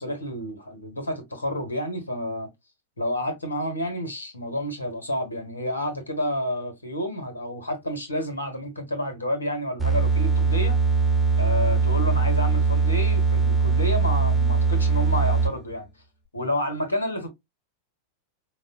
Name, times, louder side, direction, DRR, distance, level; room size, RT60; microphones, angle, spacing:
voice 1, 0.0-2.5 3.0-10.7 11.4-15.9 16.3-17.3, equal, 80° left, 1.1 m, -30 dB
sound 1, 9.8-15.7, right 5 dB, 5° left, 1.0 m, -21 dB
4.8 x 2.1 x 2.6 m
figure-of-eight pair, 90°, 0 cm